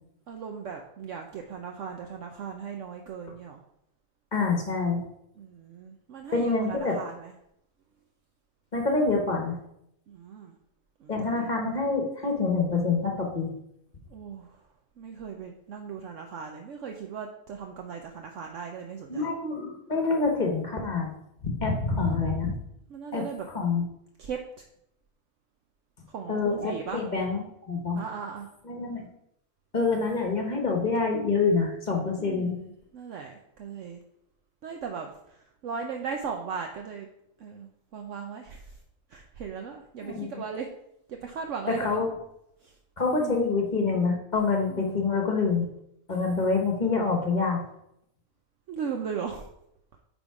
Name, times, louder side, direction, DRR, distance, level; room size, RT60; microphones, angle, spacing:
voice 1, 0.3-3.6 5.4-7.3 10.1-10.6 11.0-11.5 14.1-14.6 15.0-19.3 22.0-22.2 22.9-23.5 24.2-24.6 26.1-27.0 28.0-28.5 30.1-30.4 32.2-34.0 34.6-37.1 37.4-38.8 39.1-40.7 41.1-42.0 42.6-42.8 43.1-43.4 44.7-45.0 48.7-49.5, right 6 dB, 65° right, 3 dB, 0.9 m, -38 dB
voice 2, 4.3-5.0 6.3-6.9 8.7-9.6 11.1-13.5 19.1-21.1 21.4-22.5 23.1-23.2 23.5-23.8 26.3-28.0 28.6-29.1 29.7-32.6 40.0-40.3 41.8-42.1 43.0-45.6 46.1-47.6, left 4 dB, 35° left, 1 dB, 1.2 m, -26 dB
9.1 x 3.6 x 4.7 m, 0.79 s
omnidirectional pair, 1.5 m